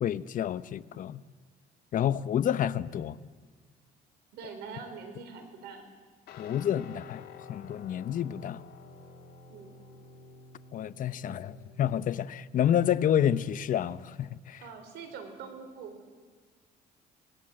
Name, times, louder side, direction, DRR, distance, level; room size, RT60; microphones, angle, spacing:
voice 1, 0.0-1.2 1.9-3.2 6.4-8.6 10.7-14.6, left 10 dB, 50° left, 0.8 m, -29 dB
voice 2, 4.3-5.9 9.5-9.8 14.6-16.0, right 5 dB, 80° right, 4.0 m, -44 dB
Guitar, 6.3-14.4, left 4 dB, 70° left, 2.9 m, -51 dB
26.5 x 18.5 x 7.6 m
cardioid pair, 110°, 17 cm